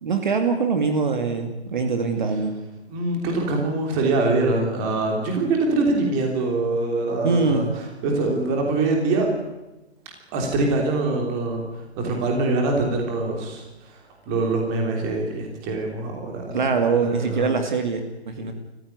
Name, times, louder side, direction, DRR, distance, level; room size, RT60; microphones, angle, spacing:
voice 1, 0.0-2.6 7.2-7.7 16.5-18.5, right 4 dB, 45° right, 6 dB, 2.4 m, -23 dB
voice 2, 2.9-9.3 10.3-14.0 14.2-17.6, right 2 dB, 15° right, 2 dB, 3.2 m, -24 dB
28.5 x 15.0 x 9.6 m, 1.0 s
hypercardioid pair, 175°, 33 cm